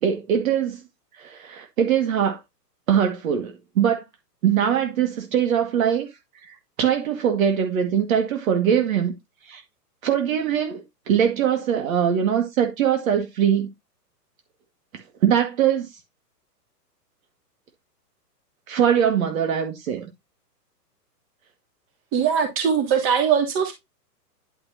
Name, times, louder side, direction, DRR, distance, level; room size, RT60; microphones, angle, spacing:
voice 1, 0.0-0.8 1.2-2.4 2.9-4.0 4.4-6.1 6.5-9.1 9.5-9.6 10.0-13.7 15.2-15.9 18.7-20.1, right 8 dB, 55° right, 2.1 m, -22 dB
voice 2, 22.1-23.7, right 7 dB, 25° right, 3.0 m, -21 dB
11.0 x 5.4 x 2.8 m
hypercardioid pair, 145°, 48 cm